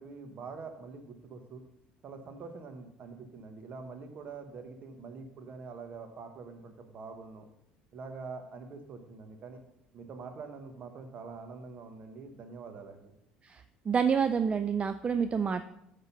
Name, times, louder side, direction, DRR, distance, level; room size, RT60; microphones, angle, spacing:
voice 1, 0.0-1.6 2.0-7.4 7.9-9.6 9.9-13.1, right 4 dB, 50° right, 7 dB, 1.2 m, -45 dB
voice 2, 13.4-15.6, right 6 dB, 30° right, 10 dB, 0.4 m, -28 dB
8.0 x 3.7 x 5.6 m, 0.81 s
hypercardioid pair, 65°, 4 cm